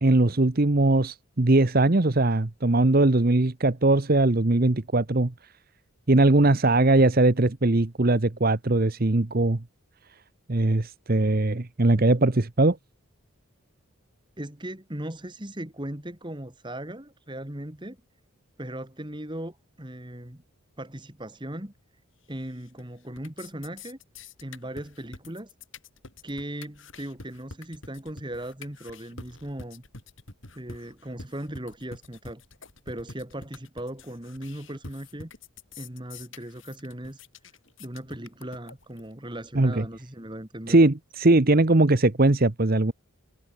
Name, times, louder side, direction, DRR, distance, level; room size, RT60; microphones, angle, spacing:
voice 1, 0.0-5.3 6.1-9.6 10.5-12.8 39.5-39.8 40.7-42.9, right 2 dB, 40° right, 1.0 m, -20 dB
voice 2, 14.4-18.0 18.6-20.4 20.8-21.7 22.3-24.0 24.4-25.5 26.2-29.8 30.5-32.4 32.9-35.3 35.8-37.2 37.8-40.8, right 1 dB, 20° right, 2.2 m, -38 dB
sound 1, 22.4-22.8 23.1-39.1, left 3 dB, 55° left, 5.2 m, -46 dB
head